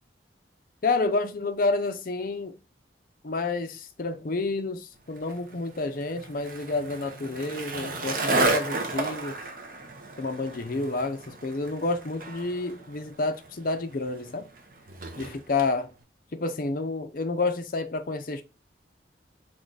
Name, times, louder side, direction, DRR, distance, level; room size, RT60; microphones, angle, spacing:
voice 1, 0.8-2.6 3.2-9.4 10.2-14.5 15.2-15.9 16.3-18.4, left 3 dB, 50° left, 0.5 m, -29 dB
Skateboard, 5.2-15.7, right 2 dB, 50° right, 0.7 m, -33 dB
3.7 x 3.1 x 3.8 m
head